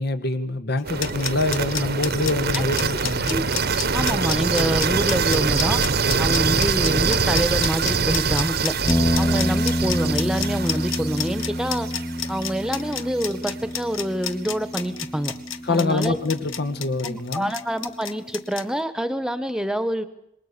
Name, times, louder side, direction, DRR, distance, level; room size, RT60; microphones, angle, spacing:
voice 1, 0.0-3.3 6.5-6.8 15.6-17.5, left 2 dB, 55° left, 12 dB, 1.6 m, -25 dB
sound 1, 0.8-18.6, left 10 dB, 85° left, 1.3 m, -30 dB
sound 2, 0.8-12.8, right 5 dB, 55° right, 1.1 m, -24 dB
voice 2, 3.9-5.8 6.2-8.7 9.2-11.9 12.3-15.3 15.7-16.2 17.0-20.1, equal, 5° right, 12 dB, 1.4 m, -26 dB
sound 3, 8.9-17.2, equal, 10° left, 1.0 m, -27 dB
26.5 x 21.5 x 6.9 m, 0.79 s
head